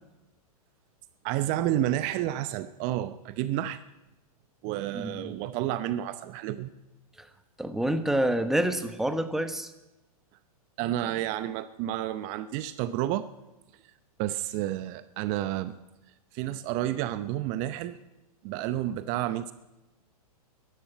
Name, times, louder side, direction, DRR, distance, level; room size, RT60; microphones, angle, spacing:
voice 1, 1.2-3.8 4.6-6.7 10.8-13.3 14.2-15.7 16.3-18.0 18.4-19.5, right 13 dB, 40° right, 13 dB, 0.8 m, -30 dB
voice 2, 4.9-5.3 7.6-9.7, right 1 dB, ahead, 9 dB, 1.1 m, -27 dB
13.0 x 11.0 x 9.0 m, 1.0 s
hypercardioid pair, 115°, 20 cm